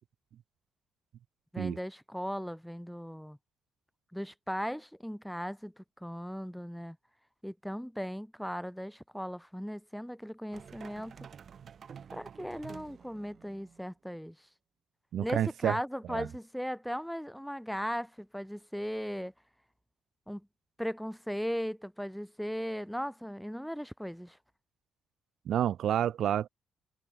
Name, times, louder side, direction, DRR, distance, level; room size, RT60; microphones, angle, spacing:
voice 1, 1.5-3.4 4.1-7.0 7.4-11.2 12.1-14.4 15.2-19.3 20.3-20.5 20.8-24.4, equal, ahead, 2.3 m, -37 dB
sound 1, 10.5-13.9, right 7 dB, 50° right, 3.1 m, -49 dB
voice 2, 15.1-15.8 16.1-16.3 25.5-26.5, right 10 dB, 70° right, 0.9 m, -29 dB
cardioid pair, 90°, 0 cm